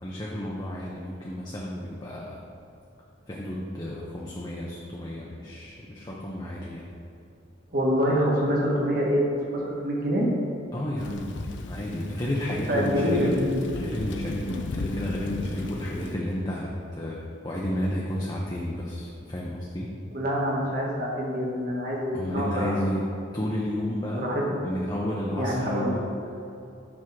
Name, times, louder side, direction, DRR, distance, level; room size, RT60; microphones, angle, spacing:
voice 1, 0.0-2.4 3.3-6.9 10.7-11.3 11.7-13.4 13.7-19.9 22.1-23.0 23.3-24.3 24.6-26.0, left 1 dB, 20° left, -4 dB, 0.7 m, -31 dB
voice 2, 7.7-9.2 9.5-10.3 12.7-13.6 20.1-22.7 24.1-24.6 25.4-26.0, equal, 50° right, -3 dB, 1.5 m, -26 dB
Thunder / Rain, 11.0-16.2, left 2 dB, 65° left, 0.5 m, -36 dB
7.5 x 3.6 x 6.0 m, 2.7 s
head